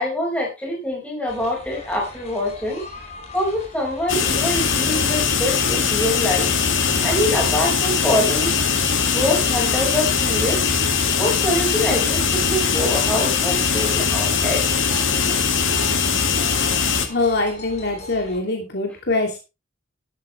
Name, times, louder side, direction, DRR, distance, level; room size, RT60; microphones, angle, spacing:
voice 1, 0.0-2.8 3.3-6.5 7.0-8.5 9.1-10.6 11.2-14.6, left 1 dB, 5° left, -2 dB, 5.2 m, -24 dB
sound 1, 1.3-18.4, left 1 dB, 35° left, 5.3 m, -38 dB
sound 2, 4.1-17.1, left 6 dB, 75° left, 2.1 m, -21 dB
voice 2, 17.1-19.4, left 2 dB, 60° left, 2 dB, 2.6 m, -23 dB
13.0 x 11.5 x 3.2 m, 0.27 s
head